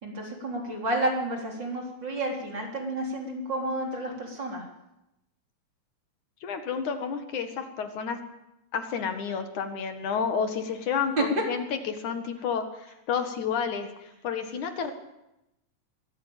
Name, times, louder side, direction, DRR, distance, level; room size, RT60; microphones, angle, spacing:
voice 1, 0.0-4.6 11.2-11.3, right 2 dB, 35° right, 1 dB, 4.5 m, -30 dB
voice 2, 6.4-8.2 8.7-13.9 14.2-14.9, left 6 dB, 70° left, 8 dB, 3.1 m, -30 dB
23.5 x 16.0 x 9.0 m, 0.92 s
omnidirectional pair, 3.6 m